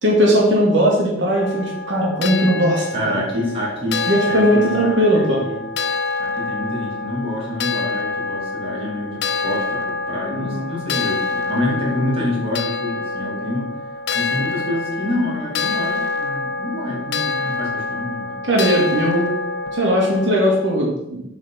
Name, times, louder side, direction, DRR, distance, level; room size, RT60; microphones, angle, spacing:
voice 1, 0.0-3.2 4.1-5.4 10.3-10.7 17.1-17.3 18.5-19.3 19.7-21.3, equal, 70° right, -3 dB, 2.3 m, -18 dB
sound 1, 1.3-20.7, left 3 dB, 60° left, 0.7 m, -26 dB
voice 2, 2.9-4.0 4.3-5.7 6.2-13.7 14.1-18.4, left 1 dB, 30° right, -5 dB, 2.8 m, -27 dB
7.6 x 4.7 x 5.9 m, 0.83 s
head